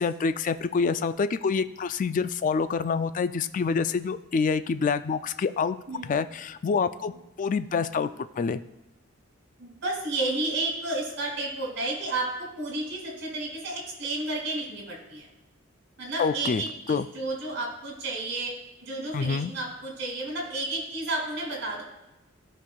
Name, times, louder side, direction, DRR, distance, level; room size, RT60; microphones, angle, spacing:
voice 1, 0.0-5.8 6.0-7.1 7.4-8.1 8.4-8.6 16.2-16.6 16.9-17.1 19.1-19.5, left 5 dB, 40° left, 12 dB, 0.3 m, -26 dB
voice 2, 9.6-15.3 16.0-18.5 18.8-21.8, right 2 dB, 65° right, 0 dB, 2.6 m, -32 dB
15.5 x 5.5 x 2.3 m, 0.97 s
head